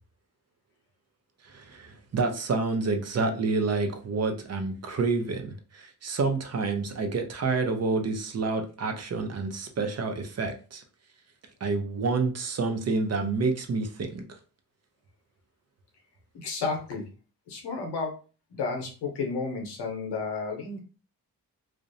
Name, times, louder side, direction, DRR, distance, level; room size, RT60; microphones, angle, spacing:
voice 1, 1.4-10.8 11.6-14.2, right 3 dB, 40° right, 6 dB, 0.5 m, -28 dB
voice 2, 16.3-17.0 17.5-18.1 18.5-20.8, left 4 dB, 90° left, 1 dB, 0.8 m, -32 dB
2.4 x 2.0 x 2.6 m, 0.35 s
cardioid pair, 65°, 40 cm